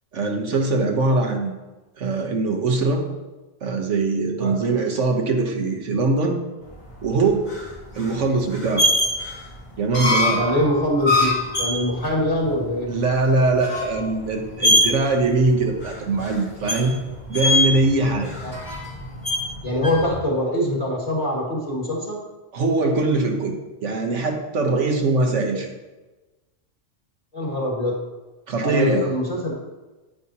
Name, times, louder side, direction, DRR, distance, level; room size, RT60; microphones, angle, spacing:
voice 1, 0.1-1.5 2.0-3.0 3.6-6.4 7.0-7.5 7.9-8.9 9.8-10.4 12.9-16.9 17.3-18.3 22.5-23.5 23.8-25.7 28.5-29.1, right 3 dB, 75° right, 3 dB, 1.4 m, -22 dB
sound 1, 6.8-20.2, left 1 dB, 55° left, 2.9 m, -24 dB
voice 2, 10.3-12.9 18.4-18.5 19.6-22.2 27.3-28.0 28.6-29.5, left 1 dB, 30° left, -3 dB, 2.2 m, -23 dB
9.8 x 8.5 x 2.9 m, 1.1 s
omnidirectional pair, 1.3 m